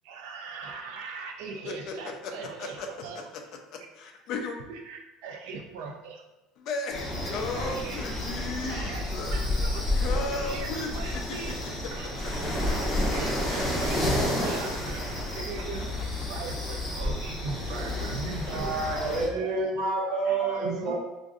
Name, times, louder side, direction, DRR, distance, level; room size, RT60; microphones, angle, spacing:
voice 1, 0.0-3.3 4.7-6.2 7.5-8.1 8.7-9.9 10.3-11.6 11.9-12.1 13.0-15.8 16.3-19.2 20.4-21.0, right 4 dB, 80° right, 3 dB, 0.3 m, -40 dB
voice 2, 1.7-2.3 2.6-2.9 3.7-4.6 6.6-9.4 10.0-11.1 12.4-13.0, left 3 dB, 50° left, 2 dB, 0.4 m, -35 dB
sound 1, 6.9-19.3, left 1 dB, 5° left, 1.1 m, -30 dB
voice 3, 18.5-21.0, right 3 dB, 60° right, -3 dB, 1.1 m, -28 dB
4.7 x 2.5 x 2.4 m, 1.0 s
cardioid pair, 170°, 0 cm